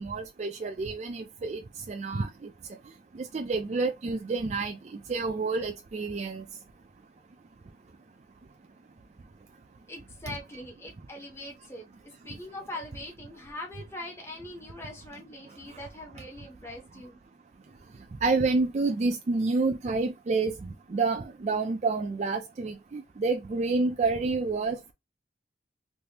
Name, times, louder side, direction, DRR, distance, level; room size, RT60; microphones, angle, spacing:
voice 1, 0.0-1.6 1.9-2.5 3.1-6.5 18.2-24.9, right 3 dB, 40° right, 0.4 m, -29 dB
voice 2, 9.9-17.2, left 1 dB, 15° left, 0.9 m, -42 dB
3.3 x 2.6 x 2.7 m
head